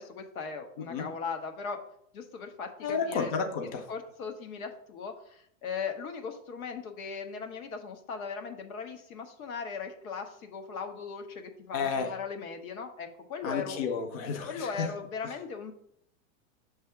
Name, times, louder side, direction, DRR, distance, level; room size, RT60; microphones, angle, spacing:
voice 1, 0.0-1.8 2.1-3.3 3.9-13.9 14.5-15.7, left 5 dB, 85° left, 5 dB, 1.3 m, -38 dB
voice 2, 0.8-1.1 2.8-3.9 11.7-12.1 13.4-14.9 15.2-15.3, left 5 dB, 30° left, 5 dB, 0.5 m, -32 dB
6.6 x 3.3 x 5.7 m, 0.70 s
supercardioid pair, 165°, 41 cm